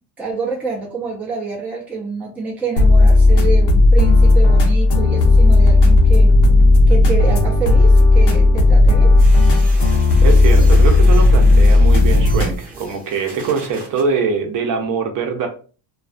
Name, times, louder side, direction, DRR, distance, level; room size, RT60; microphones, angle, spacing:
voice 1, 0.2-6.3 6.9-9.2, right 5 dB, 5° right, -3 dB, 0.4 m, -27 dB
sound 1, 2.8-12.5, left 2 dB, 90° left, 0.8 m, -11 dB
sound 2, 9.2-14.0, right 2 dB, 20° right, 0.8 m, -35 dB
voice 2, 10.2-15.5, right 5 dB, 50° right, 3 dB, 0.6 m, -22 dB
2.3 x 2.3 x 2.4 m, 0.38 s
cardioid pair, 145°, 42 cm